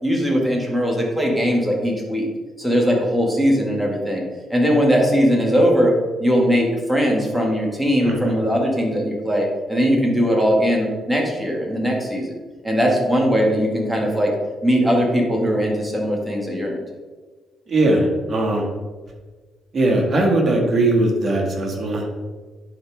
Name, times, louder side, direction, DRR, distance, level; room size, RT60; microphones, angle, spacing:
voice 1, 0.0-2.3 2.6-4.2 4.5-5.9 6.2-12.3 12.6-14.3 14.6-16.8, equal, 5° right, -2 dB, 2.1 m, -20 dB
voice 2, 8.0-8.3 17.7-18.6 19.7-22.1, right 2 dB, 40° right, 0 dB, 2.0 m, -19 dB
11.0 x 4.5 x 3.7 m, 1.4 s
cardioid pair, 90°, 0 cm